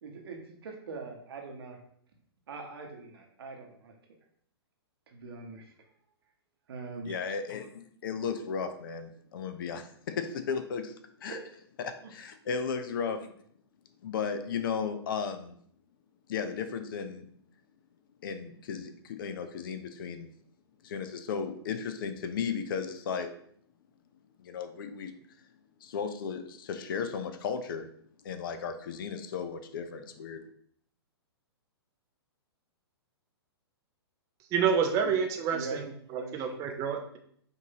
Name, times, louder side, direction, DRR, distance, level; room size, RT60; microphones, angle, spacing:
voice 1, 0.0-1.8 2.5-3.9 5.1-5.7 6.7-7.2 11.3-11.4 35.0-35.1 35.5-35.8 36.1-36.4, right 4 dB, 65° right, 2 dB, 1.0 m, -42 dB
voice 2, 7.0-10.9 11.2-11.4 11.8-13.3 14.0-15.5 16.3-17.2 18.2-20.3 20.8-23.3 24.4-25.1 25.8-27.9 28.2-30.4, left 6 dB, 55° left, 9 dB, 0.5 m, -35 dB
voice 3, 34.5-35.9 36.1-37.2, right 6 dB, 25° right, 4 dB, 0.4 m, -28 dB
5.2 x 2.6 x 2.8 m, 0.62 s
figure-of-eight pair, 115°, 14 cm